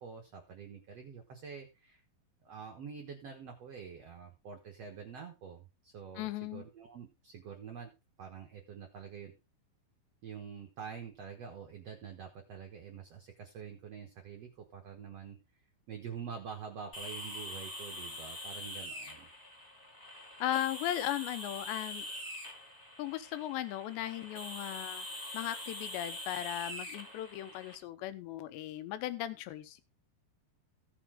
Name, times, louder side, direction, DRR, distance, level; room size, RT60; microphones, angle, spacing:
voice 1, 0.0-2.0 2.4-7.9 8.2-9.4 10.2-15.4 15.9-19.3, right 7 dB, 85° right, 3 dB, 1.4 m, -46 dB
voice 2, 6.2-6.7 20.4-22.1 23.0-25.1 25.3-29.8, left 13 dB, 85° left, 12 dB, 3.1 m, -37 dB
sound 1, 16.9-27.7, left 1 dB, 15° left, 1.9 m, -44 dB
15.5 x 7.0 x 3.7 m, 0.28 s
omnidirectional pair, 5.0 m